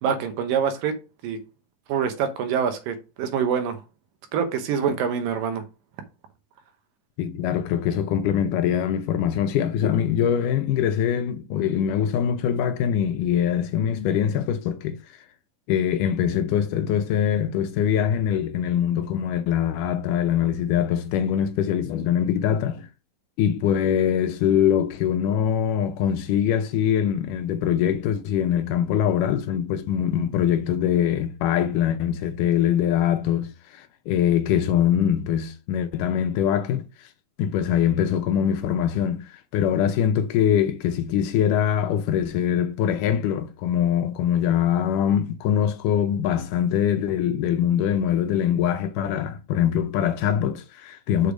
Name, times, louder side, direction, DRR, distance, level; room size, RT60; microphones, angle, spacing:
voice 1, 0.0-1.0 1.2-1.4 1.9-3.8 4.3-5.6, right 7 dB, 80° right, 2.7 m, -25 dB
voice 2, 7.2-15.0 15.7-22.9 23.4-37.1 37.4-51.3, left 9 dB, 80° left, 2.0 m, -23 dB
6.5 x 5.1 x 5.0 m
omnidirectional pair, 4.0 m